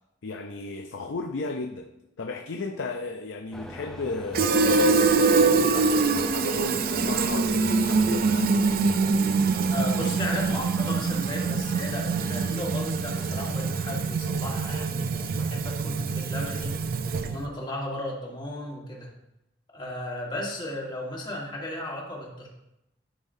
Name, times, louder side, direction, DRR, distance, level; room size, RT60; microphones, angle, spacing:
voice 1, 0.2-1.9 2.2-8.8, left 3 dB, 70° left, 4 dB, 0.5 m, -35 dB
sound 1, 3.5-10.1, equal, 5° left, 0.5 m, -43 dB
Fill (with liquid), 4.3-17.5, right 4 dB, 50° right, 0.4 m, -24 dB
voice 2, 9.7-16.8 17.2-19.1 19.7-22.5, left 1 dB, 25° left, -2 dB, 1.5 m, -35 dB
11.0 x 5.5 x 2.7 m, 0.86 s
head